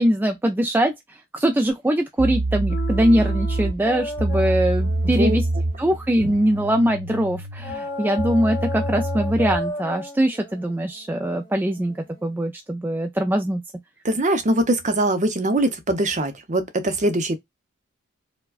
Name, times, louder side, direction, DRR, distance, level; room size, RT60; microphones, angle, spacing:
voice 1, 0.0-5.4 5.8-11.9 12.2-13.6, right 1 dB, 10° right, 0.3 m, -22 dB
sound 1, 1.7-1.8 2.2-9.7, right 2 dB, 90° right, 0.8 m, -26 dB
sound 2, 2.7-6.9 7.6-12.4, left 1 dB, 40° left, 1.8 m, -34 dB
voice 2, 5.0-5.4 14.0-17.4, right 1 dB, 35° right, 0.7 m, -22 dB
4.6 x 2.2 x 2.3 m
head